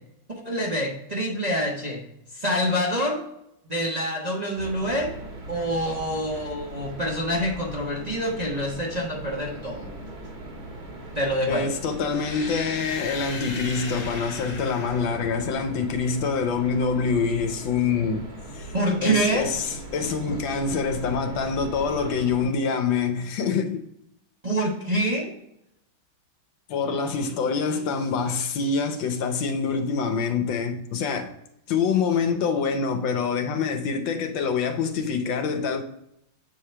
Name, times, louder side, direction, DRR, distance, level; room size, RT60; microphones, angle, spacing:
voice 1, 0.4-2.0 2.3-3.2 3.7-5.1 5.5-9.9 11.1-11.7 18.7-19.4 24.4-25.3, equal, 25° right, 0.9 m, -26 dB
sound 1, 4.6-22.5, right 1 dB, 50° right, 2.0 m, -39 dB
voice 2, 11.5-18.3 18.5-18.7 19.0-23.8 26.7-31.3 31.7-35.8, left 5 dB, 70° left, 1.4 m, -25 dB
sound 2, 12.1-16.0, left 3 dB, 45° left, 1.5 m, -38 dB
7.2 x 4.8 x 3.3 m
omnidirectional pair, 2.2 m